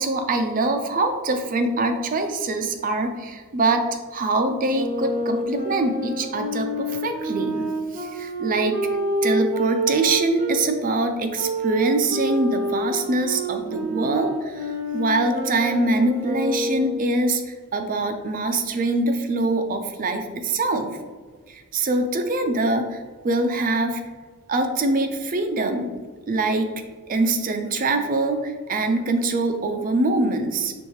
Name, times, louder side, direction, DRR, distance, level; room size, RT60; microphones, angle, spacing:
voice 1, 0.0-7.6 7.9-8.8 9.2-20.9 21.5-24.0 24.5-25.9 26.3-26.7 27.1-30.7, right 2 dB, 40° right, 6 dB, 0.4 m, -24 dB
Wind instrument woodwind instrument, 4.7-10.5 11.3-17.1, right 1 dB, 15° right, 1.0 m, -28 dB
5.2 x 3.1 x 3.1 m, 1.5 s
head